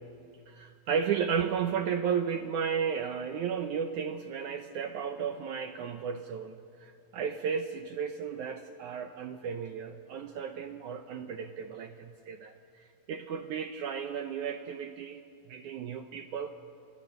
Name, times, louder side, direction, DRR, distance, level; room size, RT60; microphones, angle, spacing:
voice 1, 0.5-15.2 15.5-16.5, right 7 dB, 75° right, 7 dB, 1.9 m, -34 dB
28.5 x 25.5 x 6.8 m, 2.4 s
omnidirectional pair, 4.3 m